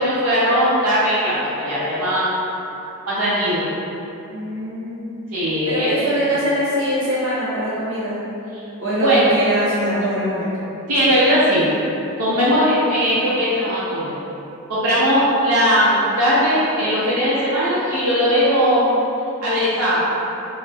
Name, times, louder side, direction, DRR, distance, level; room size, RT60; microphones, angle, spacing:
voice 1, 0.0-2.3 3.1-3.7 5.3-5.9 9.0-9.3 10.9-11.7 12.2-14.1 14.7-19.0 19.4-20.0, equal, 85° right, -9 dB, 0.6 m, -18 dB
voice 2, 4.3-5.1 5.7-8.2 8.8-10.5, equal, 55° right, -9 dB, 0.9 m, -22 dB
4.0 x 2.0 x 2.3 m, 2.9 s
head